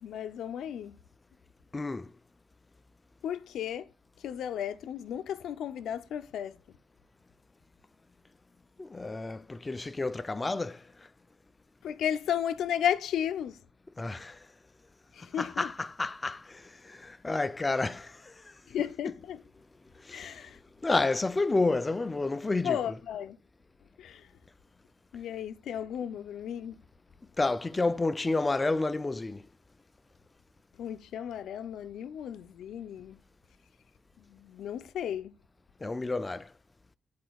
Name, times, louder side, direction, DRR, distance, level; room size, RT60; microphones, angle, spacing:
voice 1, 0.0-1.0 3.2-3.9 4.2-6.6 11.8-13.6 15.1-15.7 18.7-19.4 20.1-20.6 22.6-23.4 24.0-24.3 25.1-26.8 30.8-33.2 34.2-35.3, left 9 dB, 70° left, 0.5 m, -34 dB
voice 2, 1.7-2.1 8.8-10.8 14.0-14.4 15.4-18.1 20.1-20.4 20.8-22.8 27.4-29.4 35.8-36.5, left 3 dB, 20° left, 0.4 m, -30 dB
11.0 x 4.3 x 2.3 m
cardioid pair, 120°, 0 cm